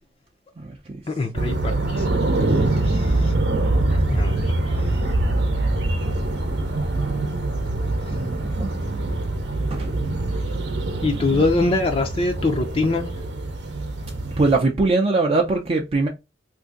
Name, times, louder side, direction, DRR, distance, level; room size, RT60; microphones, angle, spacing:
voice 1, 0.6-1.0 8.1-8.7 9.7-9.9 11.0-11.6 14.3-16.1, right 3 dB, 35° right, 0.4 m, -23 dB
voice 2, 1.1-3.3 3.9-5.1 8.1-8.2 11.0-13.2, left 3 dB, 35° left, 0.4 m, -25 dB
sound 1, 1.3-14.6, right 2 dB, 75° right, 0.7 m, -24 dB
2.6 x 2.6 x 3.7 m
head